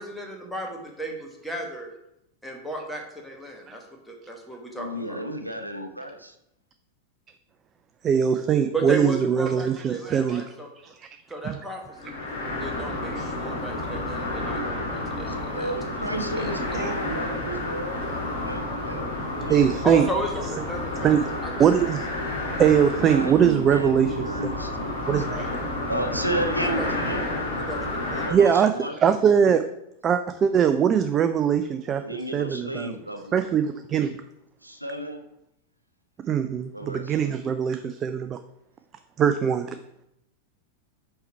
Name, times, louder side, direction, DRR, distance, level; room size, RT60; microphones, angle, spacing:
voice 1, 0.0-1.9 2.4-5.2 8.7-10.7 11.3-12.3 12.6-15.7 16.1-16.5 19.8-21.1 21.4-21.5 26.6-26.9 27.6-27.8 28.1-28.6, right 2 dB, ahead, 0 dB, 1.2 m, -33 dB
voice 2, 4.8-6.3 15.3-19.1 19.4-20.2 22.9-25.4 25.9-27.3 28.2-29.0 31.9-33.4 34.6-35.2 36.7-37.2, right 1 dB, 90° right, 6 dB, 0.6 m, -33 dB
voice 3, 8.0-10.4 11.5-11.6 13.2-13.3 16.8-16.9 19.5-20.0 21.0-21.2 21.6-22.1 22.6-24.1 24.4-24.5 25.1-25.5 28.3-28.7 29.0-29.6 30.0-32.0 32.3-32.9 33.3-34.1 36.3-38.4 39.2-39.7, right 8 dB, 25° right, 8 dB, 0.3 m, -21 dB
sound 1, 11.9-28.3, left 2 dB, 70° left, 2.2 m, -30 dB
5.6 x 4.5 x 4.2 m, 0.81 s
figure-of-eight pair, 90°, 0 cm